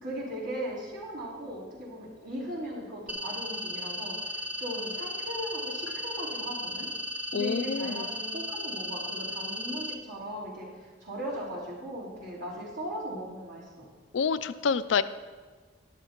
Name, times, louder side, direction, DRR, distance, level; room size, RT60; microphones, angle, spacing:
voice 1, 0.0-6.9 7.3-13.9, equal, 80° right, -8 dB, 3.8 m, -38 dB
sound 1, 3.1-9.9, equal, 10° right, 0.5 m, -36 dB
voice 2, 7.3-8.1 14.1-15.0, left 6 dB, 80° left, 14 dB, 0.4 m, -27 dB
13.0 x 11.0 x 3.0 m, 1.4 s
head